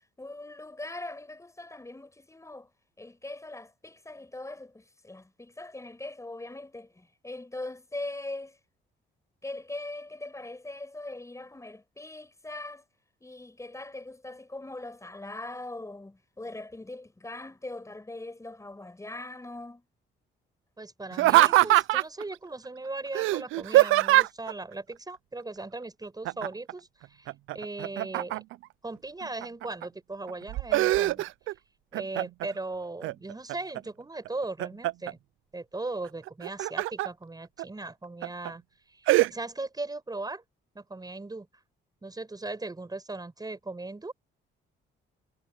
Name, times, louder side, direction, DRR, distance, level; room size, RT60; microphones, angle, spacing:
voice 1, 0.2-2.7 3.0-8.6 9.4-12.8 13.2-19.8, left 2 dB, 15° left, 7.0 m, -41 dB
voice 2, 20.8-26.9 27.2-28.4 28.8-31.2 31.9-35.2 35.5-38.6 38.9-40.4 40.7-41.5 42.0-44.1, right 2 dB, 20° right, 6.5 m, -38 dB
Laughter, 21.1-22.2 23.1-24.5 26.2-26.7 27.0-28.6 29.2-29.8 30.3-31.5 31.9-32.5 33.0-33.8 34.2-35.1 36.3-37.1 37.6-37.7 38.2-38.5 39.1-39.3, right 17 dB, 85° right, 0.5 m, -23 dB
cardioid pair, 90°, 20 cm